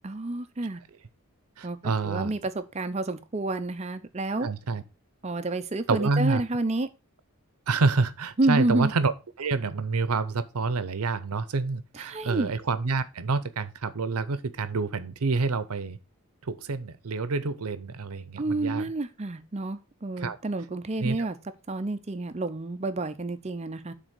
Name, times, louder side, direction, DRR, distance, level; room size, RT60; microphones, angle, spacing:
voice 1, 0.0-0.8 1.6-1.8 2.0-4.5 5.2-6.9 8.4-8.9 11.9-12.5 18.4-21.4 21.7-23.9, right 2 dB, 30° right, 0.5 m, -29 dB
voice 2, 1.6-2.3 4.4-4.8 5.9-6.4 7.7-9.1 9.4-16.0 16.4-18.8 20.2-20.4 21.0-21.3, right 4 dB, 85° right, 0.7 m, -28 dB
6.4 x 4.0 x 6.0 m
head